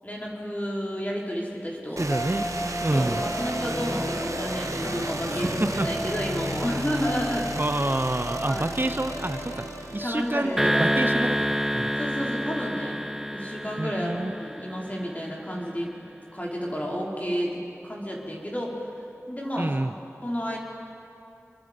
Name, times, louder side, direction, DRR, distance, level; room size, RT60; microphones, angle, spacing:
voice 1, 0.0-2.1 2.9-7.5 8.4-8.7 10.0-10.8 12.0-13.0 13.3-18.9 19.3-19.7 20.2-20.6, equal, 30° left, -3 dB, 4.7 m, -31 dB
voice 2, 2.0-2.5 2.8-3.2 5.3-6.1 7.6-11.9 13.8-14.3 19.6-19.9, right 1 dB, 40° right, 9 dB, 0.8 m, -28 dB
sound 1, 2.0-10.7, right 2 dB, 90° right, 1.1 m, -35 dB
sound 2, 2.1-12.4, equal, 65° left, 4.4 m, -34 dB
sound 3, 10.6-15.0, equal, 5° right, 1.2 m, -27 dB
28.0 x 22.0 x 5.3 m, 2.6 s
wide cardioid pair, 45°, 5 cm